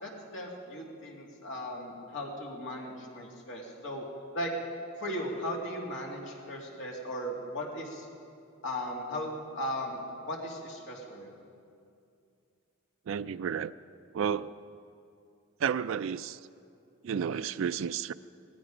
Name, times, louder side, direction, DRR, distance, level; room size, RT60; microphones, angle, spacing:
voice 1, 0.0-4.0 4.3-4.5 5.0-8.1 8.6-9.3 9.6-11.3, left 1 dB, 60° left, -1 dB, 2.6 m, -37 dB
voice 2, 13.1-13.7 14.1-14.5 15.6-16.4 17.0-18.1, right 7 dB, 65° right, 12 dB, 0.3 m, -31 dB
18.5 x 15.5 x 5.0 m, 2.4 s
head